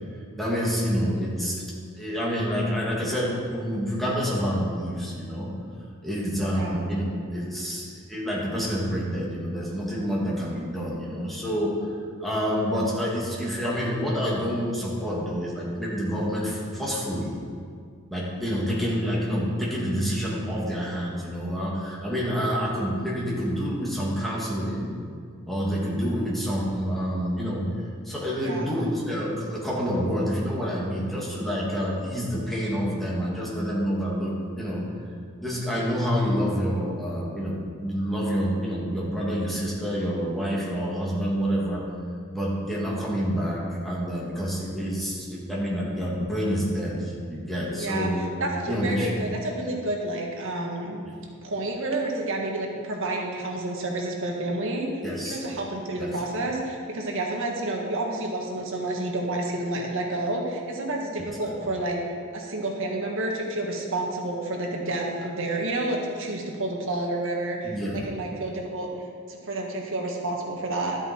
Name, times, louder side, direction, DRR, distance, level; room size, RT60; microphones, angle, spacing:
voice 1, 0.4-1.6 1.9-5.6 6.0-17.3 18.1-25.0 25.5-34.9 35.4-41.9 42.3-48.3 48.7-49.3 51.0-51.2 55.0-55.4 56.0-56.1 61.2-61.3 67.6-68.1, equal, ahead, -6 dB, 2.3 m, -28 dB
voice 2, 28.4-28.7 47.7-48.1 48.4-51.0 51.4-54.9 55.2-68.9 69.3-71.0, right 2 dB, 60° right, 0 dB, 1.6 m, -29 dB
12.5 x 8.0 x 4.5 m, 2.2 s
head